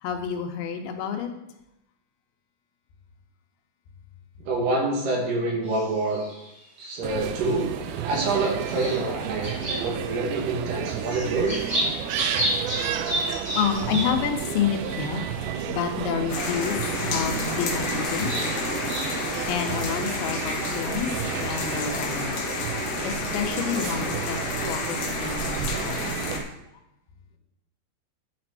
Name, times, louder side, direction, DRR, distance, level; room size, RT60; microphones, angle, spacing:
voice 1, 0.0-1.3 12.6-12.7 13.6-18.3 19.5-21.1 21.4-22.5 23.0-24.4 24.7-26.1 26.7-26.8, left 7 dB, 85° left, 5 dB, 2.7 m, -29 dB
voice 2, 4.4-6.2 6.8-11.6, right 3 dB, 65° right, -1 dB, 2.8 m, -27 dB
sound 1, 5.6-6.6 7.2-7.9 8.3-10.3 10.6-15.8 16.4-16.5 17.6-19.8, right 1 dB, 25° right, 2.9 m, -33 dB
sound 2, 7.0-26.4, right 8 dB, 85° right, 2.5 m, -32 dB
sound 3, 16.3-26.4, left 4 dB, 70° left, 1.6 m, -31 dB
10.5 x 4.4 x 4.0 m, 0.87 s
omnidirectional pair, 4.3 m